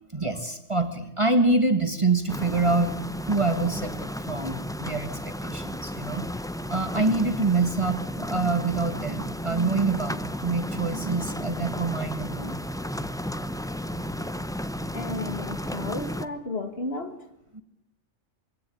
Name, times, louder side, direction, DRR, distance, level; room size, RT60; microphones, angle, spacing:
voice 1, 0.1-3.0 3.3-6.3 6.7-12.6 17.5-17.6, right 3 dB, 25° right, 7 dB, 1.8 m, -26 dB
sound 1, 2.3-16.3, equal, 5° left, 0.4 m, -33 dB
voice 2, 14.9-17.2, left 3 dB, 50° left, 7 dB, 2.3 m, -33 dB
23.5 x 17.0 x 8.7 m, 0.81 s
omnidirectional pair, 1.4 m